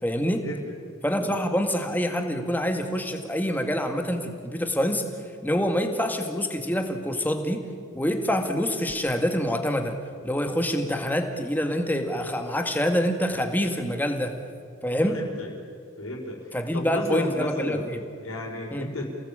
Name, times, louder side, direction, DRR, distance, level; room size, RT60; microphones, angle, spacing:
voice 1, 0.0-0.5 1.0-5.0 5.4-7.6 7.9-10.0 10.2-14.4 14.8-15.2 16.5-18.0 18.7-18.9, equal, 10° left, 5 dB, 2.0 m, -26 dB
voice 2, 15.0-15.5 16.0-17.8 18.2-19.0, left 1 dB, 80° left, -8 dB, 5.0 m, -33 dB
28.5 x 18.5 x 8.8 m, 2.4 s
head